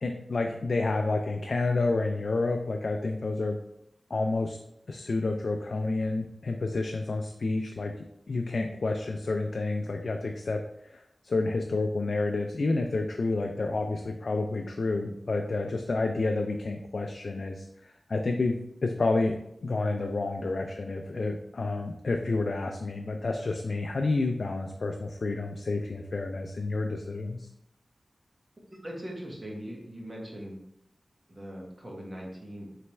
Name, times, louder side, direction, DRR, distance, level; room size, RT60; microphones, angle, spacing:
voice 1, 0.0-3.6 4.1-4.6 4.9-7.9 8.3-10.6 10.9-19.4 19.6-27.5, left 3 dB, 65° left, 3 dB, 0.3 m, -29 dB
voice 2, 28.8-30.5 31.3-32.8, equal, 35° right, -2 dB, 1.2 m, -40 dB
4.1 x 3.3 x 3.1 m, 0.78 s
wide cardioid pair, 80°, 0 cm